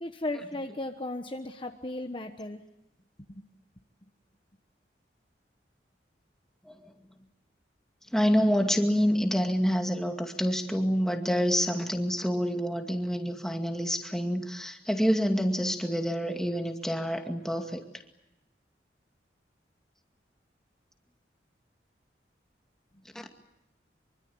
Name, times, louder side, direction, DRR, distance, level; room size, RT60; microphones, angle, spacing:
voice 1, 0.0-2.6 3.2-3.4, left 2 dB, 30° left, 5 dB, 1.2 m, -36 dB
voice 2, 8.1-17.8 23.1-23.3, equal, 5° left, 4 dB, 2.2 m, -27 dB
25.0 x 24.5 x 8.7 m, 0.93 s
head